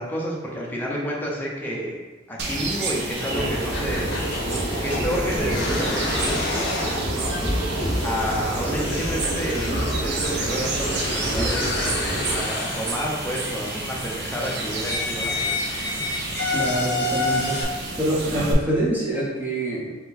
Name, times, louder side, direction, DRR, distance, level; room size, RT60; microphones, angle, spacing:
voice 1, 0.0-2.0 2.3-4.5 4.8-6.6 7.1-7.5 8.0-15.7, equal, 10° left, -3 dB, 0.7 m, -30 dB
sound 1, 2.4-18.5, right 3 dB, 55° right, 0.6 m, -31 dB
sound 2, 3.1-17.6, left 2 dB, 55° left, 0.7 m, -30 dB
sound 3, 3.3-12.4, equal, 30° left, 1.1 m, -28 dB
voice 2, 16.5-19.9, right 1 dB, 10° right, -6 dB, 1.0 m, -26 dB
4.3 x 2.2 x 4.2 m, 1.2 s
head